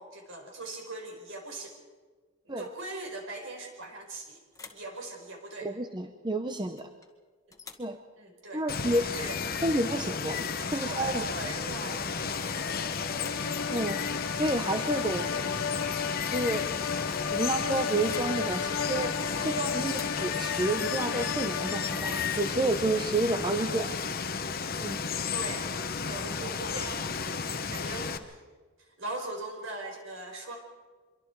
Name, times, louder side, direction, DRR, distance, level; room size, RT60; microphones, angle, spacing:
voice 1, 0.0-1.8 2.4-4.4 4.7-5.7 8.2-8.6 8.9-9.6 10.6-12.5 23.7-23.9 25.3-25.7 26.0-27.4 27.7-28.4 28.8-30.6, right 2 dB, 60° right, 2 dB, 4.9 m, -40 dB
sound 1, 3.8-4.2 4.5-4.9 6.8-7.1 7.5-7.9 9.8-10.0 10.3-10.6 12.1-13.5 15.0-15.3 15.7-16.0 16.3-16.4 18.1-18.4 19.9-20.3, left 5 dB, 15° left, 1.6 m, -49 dB
voice 2, 5.6-6.9 7.8-8.0 8.5-9.1 9.6-11.3 13.7-14.0 14.3-15.3 16.3-16.9 17.3-19.1 19.4-23.9 24.8-25.0, right 2 dB, 20° right, 6 dB, 0.8 m, -30 dB
Water, 8.7-28.2, left 5 dB, 45° left, 1.0 m, -33 dB
sound 2, 11.8-22.8, left 7 dB, 80° left, 0.7 m, -35 dB
25.5 x 23.5 x 4.7 m, 1.4 s
head